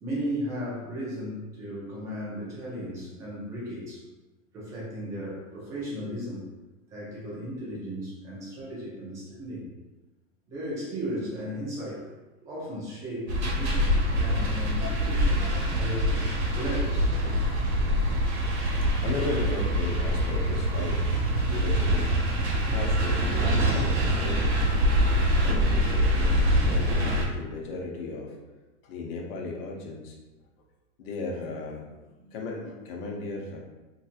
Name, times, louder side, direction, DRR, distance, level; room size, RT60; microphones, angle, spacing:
voice 1, 0.0-4.0 4.5-6.5 6.9-9.7 10.5-12.1 12.4-16.2 16.5-17.3 17.8-18.2 19.2-19.3, equal, 10° right, -6 dB, 0.3 m, -36 dB
sound 1, 13.3-27.3, equal, 55° right, 1.0 m, -24 dB
voice 2, 18.1-24.7 25.0-28.5 28.8-30.2 31.0-33.6, left 3 dB, 45° left, -1 dB, 0.8 m, -37 dB
3.9 x 2.7 x 2.5 m, 1.1 s
hypercardioid pair, 140°, 39 cm